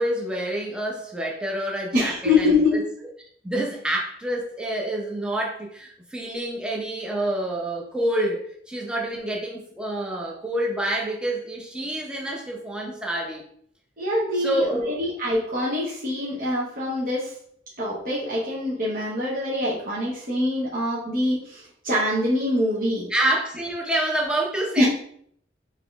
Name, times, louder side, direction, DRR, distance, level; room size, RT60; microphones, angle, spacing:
voice 1, 0.0-2.8 3.4-13.4 14.3-15.0 23.1-24.8, right 1 dB, 5° right, -2 dB, 0.7 m, -27 dB
voice 2, 1.9-2.7 14.0-17.3 17.8-23.0 24.8-24.9, left 2 dB, 50° right, -6 dB, 1.0 m, -24 dB
4.1 x 2.9 x 3.5 m, 0.64 s
head